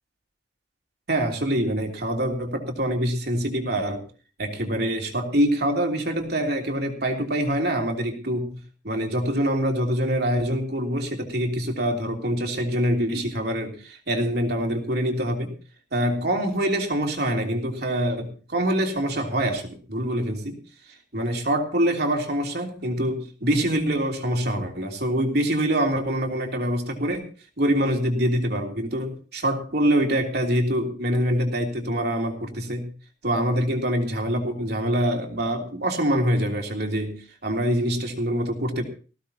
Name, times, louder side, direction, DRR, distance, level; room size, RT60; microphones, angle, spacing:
voice 1, 1.1-4.0 4.4-8.6 8.8-15.5 15.9-20.6 20.9-27.2 27.6-32.9 33.2-37.2 37.4-38.8, equal, 60° right, 2 dB, 3.1 m, -25 dB
19.5 x 15.5 x 2.9 m, 0.36 s
head